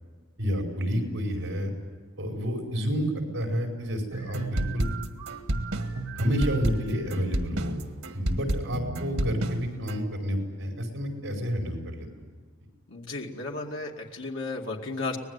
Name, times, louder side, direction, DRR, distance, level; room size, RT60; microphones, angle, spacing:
voice 1, 0.4-1.7 2.2-4.9 6.1-7.7 8.1-12.1, equal, 65° right, 2 dB, 5.1 m, -29 dB
sound 1, 4.1-10.0, right 1 dB, 85° right, 1.7 m, -30 dB
voice 2, 12.9-15.2, left 3 dB, 65° left, 0 dB, 2.4 m, -34 dB
24.5 x 19.5 x 9.7 m, 1.5 s
head